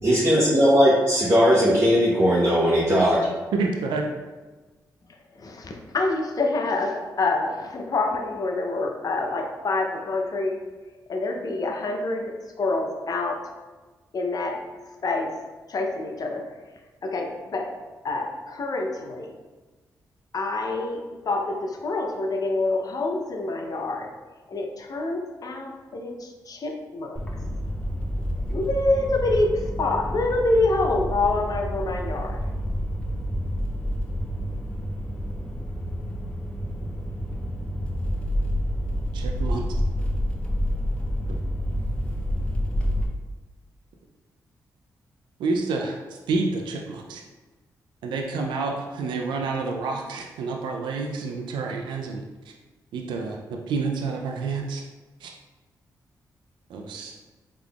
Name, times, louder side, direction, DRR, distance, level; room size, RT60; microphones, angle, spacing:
voice 1, 0.0-3.2, equal, 35° right, -7 dB, 0.9 m, -18 dB
voice 2, 3.5-4.0 39.1-39.6 45.4-46.0 46.3-47.2 48.0-52.2 52.9-54.8 55.2-55.3 56.7-57.1, right 4 dB, 85° right, 2 dB, 0.4 m, -28 dB
voice 3, 5.4-10.7 11.1-13.5 14.1-14.7 15.0-15.4 15.7-16.5 17.0-17.7 18.0-19.4 20.3-24.1 24.5-27.2 28.5-32.4, left 2 dB, 55° left, 2 dB, 0.6 m, -26 dB
sound 1, 27.1-43.1, equal, 15° left, 0.7 m, -28 dB
3.6 x 3.4 x 2.3 m, 1.3 s
supercardioid pair, 50°, 8 cm